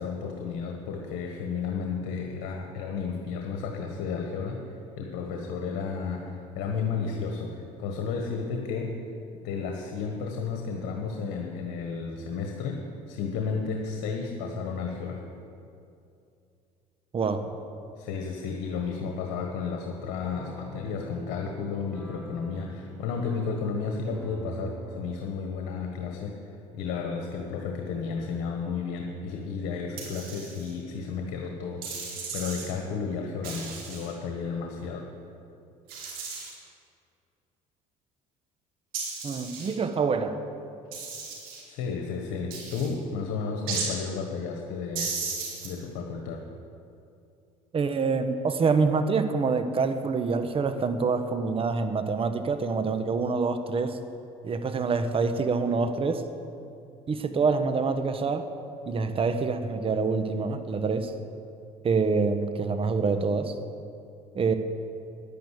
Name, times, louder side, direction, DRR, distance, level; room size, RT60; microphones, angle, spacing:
voice 1, 0.0-4.6 5.0-9.0 9.4-12.8 13.1-15.2 17.4-17.5 18.0-35.1 41.7-45.1 45.6-46.4, left 5 dB, 80° left, 2 dB, 1.6 m, -33 dB
sound 1, 18.8-25.2, equal, 10° left, 4.0 m, -45 dB
sound 2, 30.0-30.7 31.8-32.7 33.4-34.1 35.9-36.5 38.9-39.7 40.9-41.6 42.5-42.9 43.7-43.9 45.0-45.7, right 5 dB, 75° right, 3.5 m, -35 dB
voice 2, 39.2-40.4 47.7-54.0 54.4-56.2 57.1-58.5 58.9-61.1 61.8-63.5 64.3-64.5, right 4 dB, 40° right, 9 dB, 1.2 m, -26 dB
10.5 x 10.5 x 8.5 m, 2.6 s
supercardioid pair, 90°, 15 cm